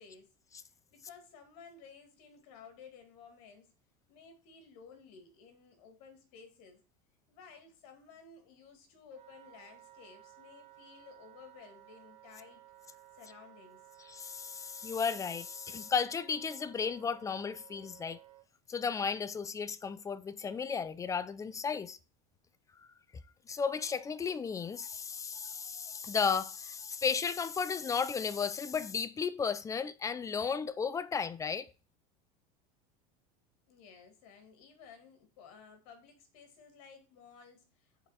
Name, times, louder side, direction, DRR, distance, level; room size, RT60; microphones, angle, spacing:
voice 1, 0.0-3.7 4.1-6.8 7.3-12.6 13.1-13.8 33.7-38.1, left 6 dB, 65° left, 2.2 m, -55 dB
Wind instrument woodwind instrument, 9.1-18.5, right 14 dB, 35° right, 1.2 m, -57 dB
voice 2, 14.1-18.2 18.7-22.0 23.5-31.7, left 6 dB, 15° left, 0.4 m, -34 dB
8.2 x 4.2 x 4.1 m
supercardioid pair, 125°, 19 cm